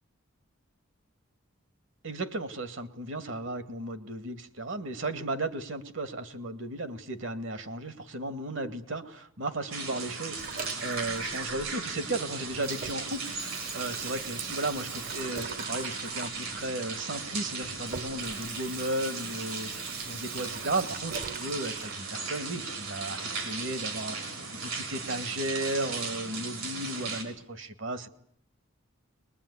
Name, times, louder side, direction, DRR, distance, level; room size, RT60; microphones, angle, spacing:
voice 1, 2.0-28.1, right 2 dB, 65° right, 11 dB, 2.2 m, -35 dB
sound 1, 9.7-27.2, right 4 dB, 80° right, 6.1 m, -37 dB
Water tap faucet / Sink (filling or washing), 10.4-12.2 12.5-22.0, right 6 dB, 40° right, 1.0 m, -43 dB
22.5 x 21.5 x 10.0 m, 0.67 s
head